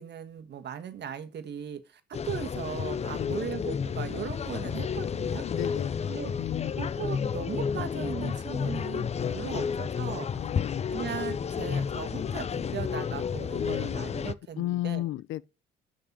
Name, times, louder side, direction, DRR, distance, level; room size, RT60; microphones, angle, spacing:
voice 1, 0.0-5.4 6.1-6.3 6.8-10.3 10.9-15.1, right 8 dB, 60° right, 1.5 m, -38 dB
sound 1, 2.1-14.3, left 6 dB, 35° left, 0.5 m, -31 dB
voice 2, 3.1-3.5 5.4-6.0 6.4-6.7 9.2-9.6 10.4-10.9 13.5-14.0 14.6-15.5, left 15 dB, 85° left, 0.5 m, -34 dB
6.9 x 5.4 x 7.2 m
cardioid pair, 90°, 20 cm